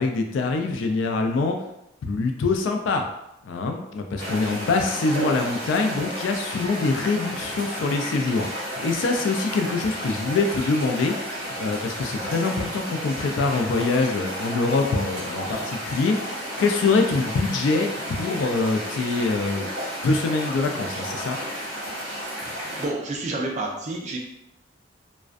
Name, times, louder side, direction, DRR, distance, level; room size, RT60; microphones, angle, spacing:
voice 1, 0.0-1.6 2.0-3.1 3.4-8.5 8.8-11.1 11.6-16.2 16.6-19.7 20.0-21.4, left 3 dB, 75° left, 4 dB, 0.3 m, -24 dB
sound 1, 4.2-22.9, equal, 55° right, 1.1 m, -32 dB
voice 2, 22.8-24.2, right 2 dB, 35° right, 1 dB, 0.3 m, -29 dB
2.4 x 2.1 x 2.4 m, 0.83 s
head